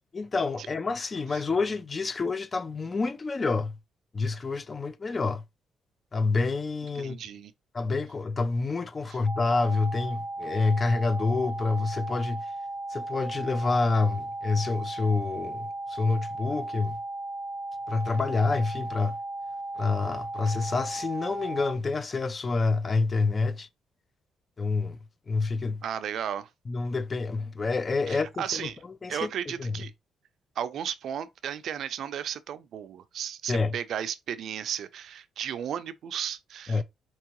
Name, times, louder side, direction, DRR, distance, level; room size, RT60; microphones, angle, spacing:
voice 1, 0.1-3.8 4.1-5.4 6.1-7.2 7.7-12.4 12.9-17.0 17.9-19.2 19.8-23.7 24.6-25.0 25.3-25.8 26.7-28.7 29.0-29.8 33.5-33.7 36.7-36.8, left 3 dB, 30° left, 0.5 m, -28 dB
voice 2, 7.0-7.5 25.8-26.5 28.1-28.8 29.1-29.9 30.6-36.8, right 9 dB, 70° right, 0.5 m, -34 dB
sound 1, 9.3-21.7, right 2 dB, 5° right, 0.8 m, -36 dB
4.6 x 2.9 x 2.9 m
cardioid pair, 90°, 0 cm